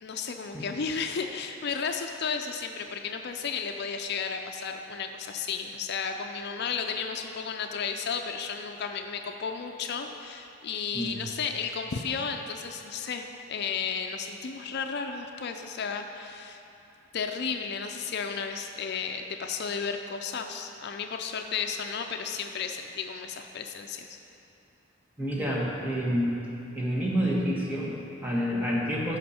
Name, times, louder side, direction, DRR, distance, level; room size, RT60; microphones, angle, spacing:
voice 1, 0.0-16.6 17.1-24.2, left 6 dB, 55° left, 5 dB, 0.5 m, -33 dB
voice 2, 25.2-26.4 26.7-29.2, equal, 10° right, -4 dB, 1.4 m, -28 dB
15.0 x 5.5 x 4.3 m, 2.8 s
head